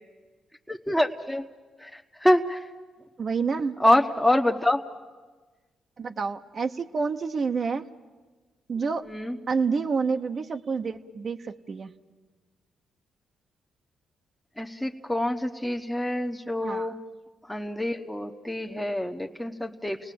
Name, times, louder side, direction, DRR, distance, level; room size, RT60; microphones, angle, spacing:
voice 1, 0.7-1.4 2.2-2.6 3.8-4.8 9.1-9.3 14.6-16.9 17.5-20.0, left 1 dB, 5° left, 3 dB, 1.1 m, -25 dB
voice 2, 3.2-3.8 6.0-7.9 8.7-9.0 9.5-11.9 16.6-16.9, right 5 dB, 50° right, 6 dB, 0.9 m, -28 dB
28.5 x 18.5 x 7.6 m, 1.3 s
supercardioid pair, 65°, 0 cm